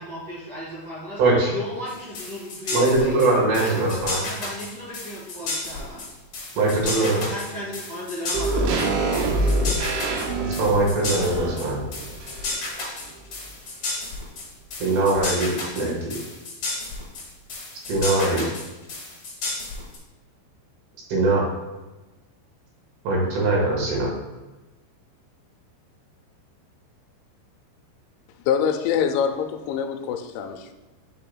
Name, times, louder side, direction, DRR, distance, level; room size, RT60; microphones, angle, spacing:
voice 1, 0.0-1.2 1.5-3.3 3.6-6.0 6.9-9.2, left 1 dB, 45° right, -10 dB, 1.5 m, -35 dB
voice 2, 1.2-1.5 2.7-4.2 6.6-7.3 9.4-9.5 10.4-11.8 14.8-16.2 17.9-18.4 21.1-21.5 23.1-24.1, right 2 dB, 65° right, -3 dB, 3.3 m, -21 dB
sound 1, 1.9-20.0, left 2 dB, 50° left, 1.6 m, -32 dB
sound 2, 8.3-12.8 13.1-13.2, right 2 dB, 80° right, 3.2 m, -26 dB
voice 3, 28.5-30.7, left 7 dB, 85° left, 4 dB, 2.9 m, -24 dB
8.3 x 5.6 x 2.2 m, 1.1 s
omnidirectional pair, 5.4 m